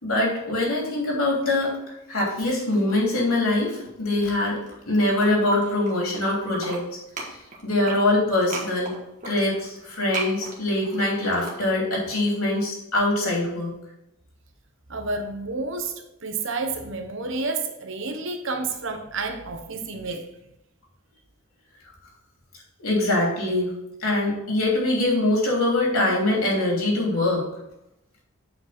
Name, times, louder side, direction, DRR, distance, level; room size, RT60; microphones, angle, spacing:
voice 1, 0.0-4.6 4.8-6.9 7.6-8.9 9.2-13.7 22.8-27.5, left 2 dB, 75° left, -2 dB, 3.1 m, -23 dB
sound 1, 4.6-6.2 6.5-12.1, right 2 dB, 35° right, 1.6 m, -36 dB
voice 2, 14.9-20.3, right 3 dB, 60° right, 6 dB, 1.0 m, -30 dB
8.4 x 5.0 x 4.3 m, 0.85 s
head